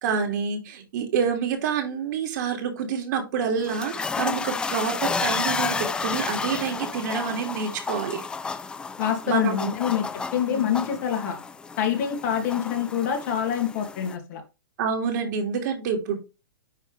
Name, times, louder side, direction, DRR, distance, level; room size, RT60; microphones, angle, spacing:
voice 1, 0.0-8.2 9.3-9.7 10.5-10.6 14.8-16.2, right 6 dB, 55° right, 2.5 m, -27 dB
sound 1, 3.4-14.1, left 4 dB, 10° left, 0.4 m, -31 dB
voice 2, 9.0-10.0 10.3-11.4 11.8-14.4, left 9 dB, 50° left, 2.3 m, -26 dB
9.8 x 3.6 x 3.3 m
hypercardioid pair, 130°, 12 cm